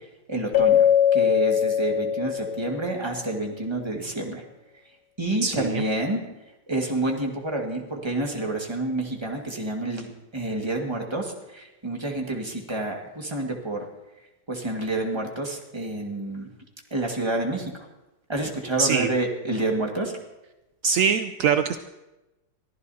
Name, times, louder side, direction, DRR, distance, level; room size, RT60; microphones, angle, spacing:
voice 1, 0.3-0.9 1.1-4.4 5.2-6.2 6.7-13.9 14.5-16.5 16.9-17.9 18.3-20.1, right 2 dB, 15° right, 1 dB, 1.6 m, -28 dB
Keyboard (musical), 0.5-3.0, left 9 dB, 55° left, 0.8 m, -21 dB
voice 2, 5.4-5.8 18.8-19.1 20.8-21.8, right 6 dB, 70° right, 8 dB, 0.8 m, -23 dB
23.0 x 14.5 x 2.8 m, 0.99 s
omnidirectional pair, 1.9 m